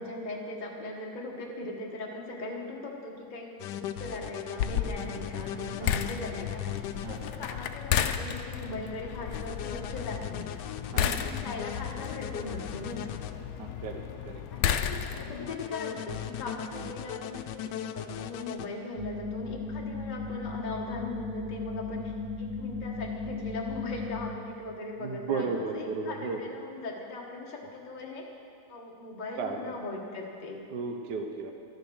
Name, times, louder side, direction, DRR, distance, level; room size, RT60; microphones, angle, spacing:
voice 1, 0.0-10.6 10.9-13.2 14.5-28.3 28.7-30.6, left 2 dB, 30° left, -2 dB, 1.4 m, -39 dB
sound 1, 3.6-7.3 9.3-13.3 15.5-18.7, left 11 dB, 90° left, 1.2 m, -38 dB
sound 2, 4.6-15.5, left 9 dB, 70° left, 1.1 m, -33 dB
voice 2, 10.9-11.2 13.6-14.4 16.7-16.9 25.0-26.4 29.4-29.6 30.7-31.5, right 4 dB, 75° right, 4 dB, 1.5 m, -34 dB
sound 3, 19.0-24.3, left 4 dB, 20° right, 0.8 m, -36 dB
12.5 x 10.5 x 6.3 m, 2.4 s
omnidirectional pair, 1.8 m